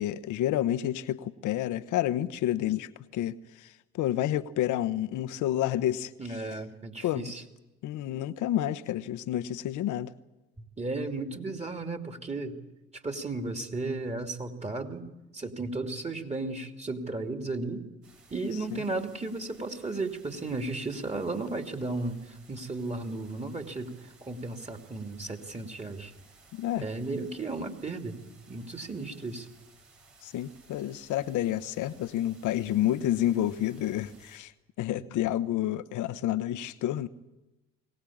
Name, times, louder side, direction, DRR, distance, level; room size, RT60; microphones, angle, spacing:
voice 1, 0.0-6.1 7.0-7.3 7.8-10.1 18.7-18.8 26.5-26.9 30.2-34.5 34.8-37.1, left 12 dB, 60° left, 11 dB, 1.1 m, -29 dB
voice 2, 6.2-7.4 10.6-12.6 13.0-15.1 15.3-17.9 18.3-26.1 26.8-28.2 28.5-29.5, right 3 dB, 20° right, 5 dB, 2.8 m, -34 dB
sound 1, 18.0-34.4, right 3 dB, 75° right, 7.0 m, -58 dB
23.0 x 18.0 x 8.7 m, 1.1 s
hypercardioid pair, 55°, 34 cm